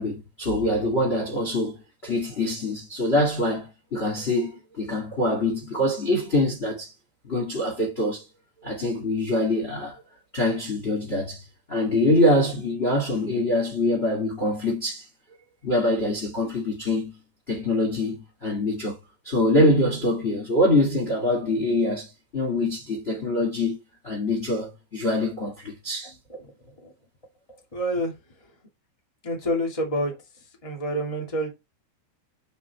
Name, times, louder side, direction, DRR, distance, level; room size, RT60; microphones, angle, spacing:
voice 1, 0.0-6.9 7.2-8.2 8.6-10.0 10.3-15.0 15.6-17.2 17.5-19.0 19.2-23.8 24.0-26.1, left 1 dB, 45° left, 0.7 m, -24 dB
voice 2, 26.0-26.5 26.8-26.9 27.7-28.1 29.2-30.2 30.6-31.5, equal, 20° left, 0.9 m, -28 dB
5.9 x 5.9 x 4.2 m
omnidirectional pair, 5.1 m